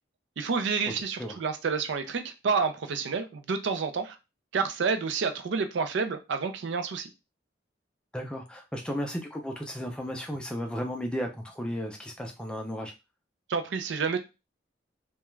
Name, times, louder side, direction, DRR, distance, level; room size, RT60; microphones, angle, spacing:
voice 1, 0.4-4.2 4.5-7.1 13.5-14.2, right 5 dB, 75° right, 0.4 m, -29 dB
voice 2, 8.1-12.9, equal, 5° left, 0.4 m, -34 dB
2.3 x 2.2 x 3.0 m
head